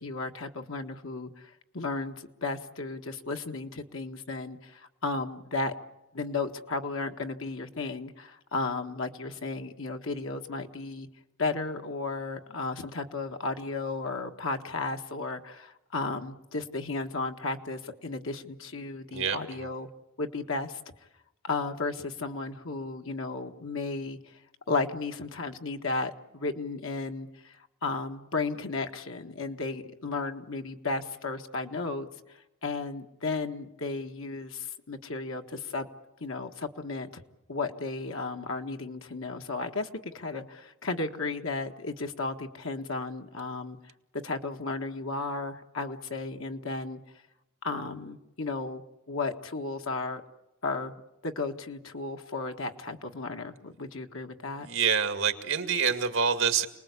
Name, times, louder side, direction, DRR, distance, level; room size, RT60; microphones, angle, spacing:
voice 1, 0.0-5.7 6.1-11.1 11.4-19.9 20.2-20.8 21.4-24.2 24.7-27.6 27.8-32.1 32.6-35.9 36.2-37.1 37.5-43.8 44.2-47.0 47.6-48.8 49.1-50.2 50.6-50.9 51.2-54.7, left 3 dB, 75° left, 5 dB, 1.6 m, -34 dB
voice 2, 54.6-56.7, right 6 dB, 70° right, 7 dB, 2.2 m, -26 dB
28.5 x 20.0 x 8.4 m, 0.93 s
head